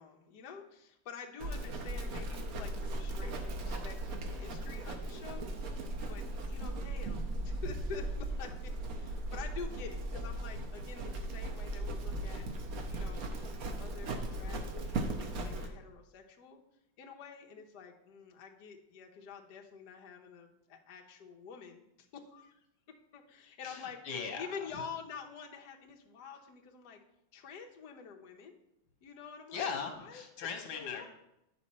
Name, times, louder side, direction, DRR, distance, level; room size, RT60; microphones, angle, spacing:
voice 1, 0.0-12.5 12.9-16.6 17.0-22.6 23.1-24.0 24.4-27.0 27.3-28.6 29.0-29.7 30.0-30.2 30.7-31.1, left 6 dB, 60° left, 2 dB, 1.4 m, -48 dB
Livestock farm animals working animals, 1.4-15.7, right 1 dB, 55° right, 1.1 m, -37 dB
voice 2, 23.6-24.8 29.5-31.1, left 6 dB, 85° left, 3 dB, 1.8 m, -39 dB
9.6 x 5.3 x 4.2 m, 0.84 s
omnidirectional pair, 2.2 m